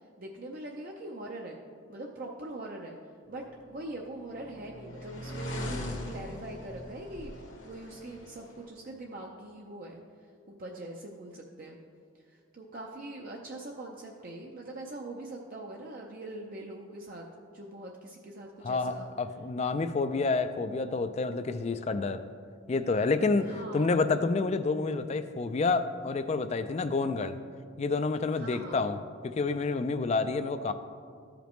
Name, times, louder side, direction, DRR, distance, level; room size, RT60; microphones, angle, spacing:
voice 1, 0.2-1.6 1.9-3.0 3.3-7.3 7.6-10.0 10.5-11.8 12.3-17.2 17.5-19.1 23.4-24.0 28.4-28.8, right 2 dB, 45° right, -1 dB, 0.5 m, -42 dB
sound 1, 3.7-8.7, left 1 dB, 65° left, 1.2 m, -40 dB
voice 2, 18.6-22.3 22.7-27.4 27.8-29.0 29.2-30.7, left 3 dB, 35° left, 10 dB, 0.3 m, -29 dB
13.5 x 5.1 x 3.0 m, 2.2 s
head